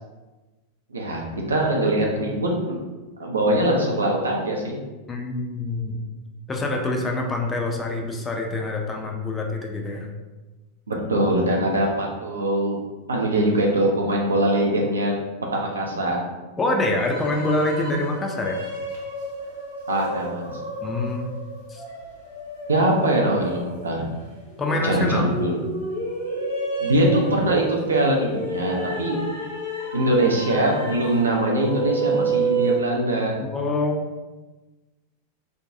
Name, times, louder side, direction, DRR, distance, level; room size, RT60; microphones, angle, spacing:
voice 1, 0.9-2.8 3.2-4.8 10.9-12.7 13.1-15.1 15.5-16.2 19.9-20.5 22.7-24.0 24.8-25.6 26.8-29.2 29.9-33.4, right 1 dB, 75° right, -1 dB, 0.5 m, -22 dB
voice 2, 5.1-6.0 6.5-10.1 16.6-18.6 20.8-21.3 21.7-21.8 24.6-25.3 33.5-34.0, left 2 dB, 15° left, 1 dB, 0.4 m, -25 dB
sound 1, 16.9-32.8, right 2 dB, 85° left, 1.1 m, -30 dB
2.6 x 2.2 x 2.5 m, 1.2 s
figure-of-eight pair, 90°, 0 cm